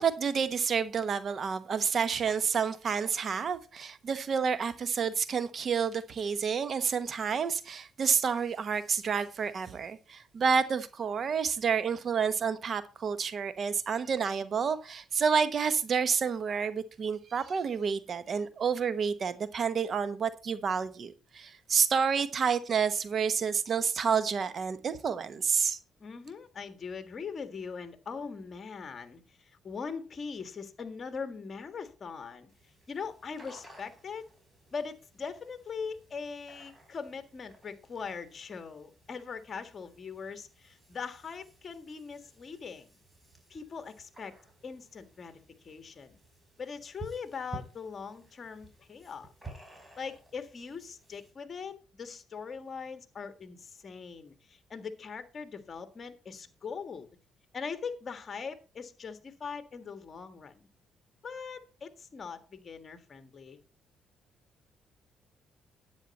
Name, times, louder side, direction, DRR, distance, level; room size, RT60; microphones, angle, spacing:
voice 1, 0.0-25.8, right 6 dB, 50° right, 1.1 m, -29 dB
voice 2, 26.0-32.5 32.9-34.3 34.7-43.0 43.5-44.4 44.6-46.2 46.6-49.3 50.0-57.1 57.5-60.6 61.2-63.6, left 5 dB, 40° left, 1.6 m, -41 dB
sound 1, 32.5-51.3, right 2 dB, 15° right, 4.6 m, -53 dB
10.5 x 8.8 x 4.2 m
cardioid pair, 90°, 0 cm